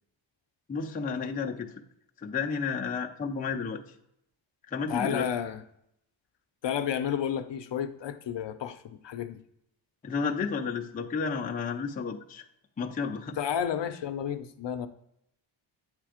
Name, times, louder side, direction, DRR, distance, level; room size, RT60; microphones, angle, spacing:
voice 1, 0.7-1.7 2.2-3.8 4.7-5.3 10.0-12.4 12.8-13.4, left 5 dB, 20° left, 0 dB, 0.5 m, -31 dB
voice 2, 4.9-5.6 6.6-9.4 13.4-14.9, left 8 dB, 60° left, 8 dB, 0.7 m, -31 dB
8.2 x 3.3 x 5.0 m, 0.77 s
wide cardioid pair, 150°, 48 cm